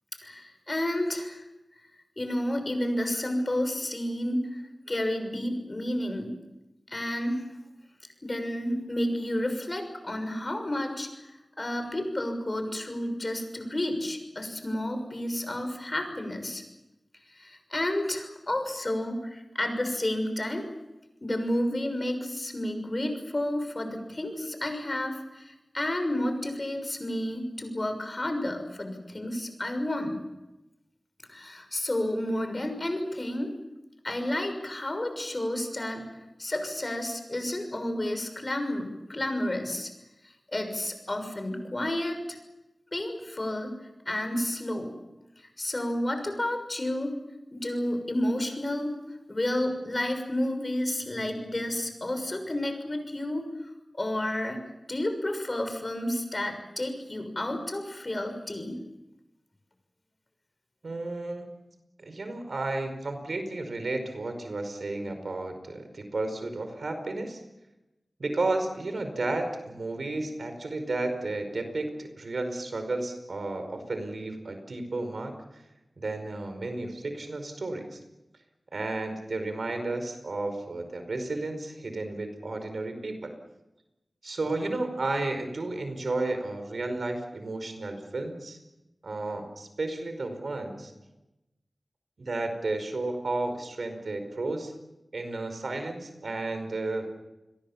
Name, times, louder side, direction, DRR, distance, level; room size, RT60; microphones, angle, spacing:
voice 1, 0.2-1.5 2.2-4.6 4.9-6.3 6.9-7.4 8.2-16.6 17.4-20.6 21.2-30.2 31.3-33.5 34.0-36.0 36.4-39.9 40.5-42.4 42.9-43.7 44.1-44.9 45.6-47.1 47.5-48.9 49.3-53.4 54.0-54.6 54.9-58.8, left 1 dB, 40° left, 6 dB, 6.4 m, -31 dB
voice 2, 60.8-61.5 62.0-67.4 68.2-75.6 76.0-78.0 78.7-83.3 84.2-88.6 89.0-90.9 92.2-94.7 95.1-97.1, right 2 dB, 80° right, 7 dB, 5.0 m, -32 dB
29.0 x 22.0 x 7.3 m, 0.96 s
wide cardioid pair, 55°, 0 cm